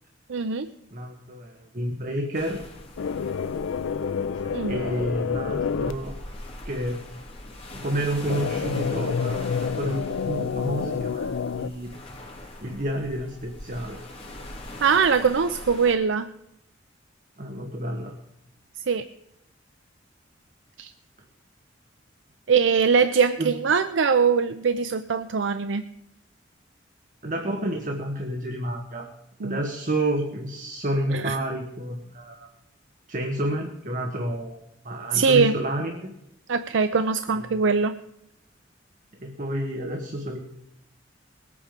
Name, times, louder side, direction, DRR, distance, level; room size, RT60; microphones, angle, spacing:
voice 1, 0.3-0.7 4.5-4.8 14.8-16.3 18.9-19.1 20.8-20.9 22.5-25.8 29.4-29.6 31.1-31.3 35.1-35.6 36.5-38.0, right 5 dB, 75° right, 10 dB, 0.5 m, -22 dB
voice 2, 0.9-2.6 4.7-6.1 6.6-7.0 7.7-11.9 12.6-14.0 17.4-18.2 23.4-23.5 27.2-29.1 29.4-32.5 33.1-36.1 37.5-37.6 39.2-40.4, right 1 dB, 45° right, 3 dB, 1.2 m, -30 dB
sound 1, 2.3-15.9, left 1 dB, 30° left, 2.3 m, -42 dB
sound 2, 3.0-5.9 8.3-11.7, left 6 dB, 90° left, 0.4 m, -28 dB
20.0 x 8.5 x 5.1 m, 0.84 s
head